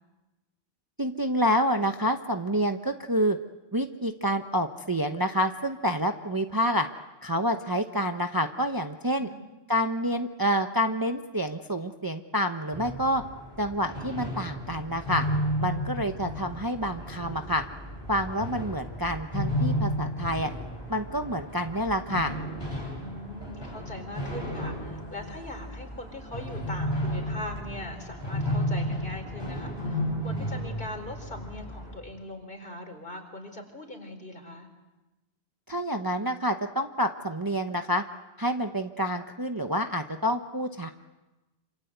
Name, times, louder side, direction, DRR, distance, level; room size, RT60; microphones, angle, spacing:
voice 1, 1.0-3.4 3.7-6.9 7.2-9.3 9.7-13.2 13.6-15.3 15.6-17.6 18.1-20.5 20.9-22.3 35.7-38.0 38.4-40.9, equal, 20° right, 6 dB, 0.9 m, -28 dB
sound 1, 12.7-32.0, equal, 20° left, 7.5 m, -33 dB
voice 2, 23.0-30.0 30.2-34.7, left 1 dB, 50° left, 4 dB, 4.7 m, -41 dB
27.0 x 27.0 x 8.1 m, 1.1 s
omnidirectional pair, 1.1 m